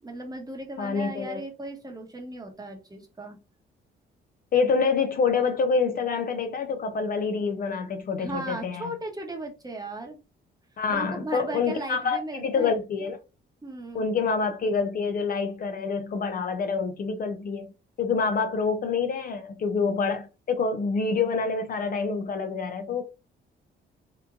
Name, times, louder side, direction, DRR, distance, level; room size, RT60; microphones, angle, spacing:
voice 1, 0.0-3.4 8.2-10.2 10.9-12.8 13.6-14.1, right 2 dB, 20° right, 0.9 m, -37 dB
voice 2, 0.8-1.4 4.5-8.9 10.8-13.2 13.9-17.7 18.0-23.0, left 5 dB, 45° left, 0.5 m, -27 dB
2.9 x 2.2 x 2.5 m
cardioid pair, 90°, 20 cm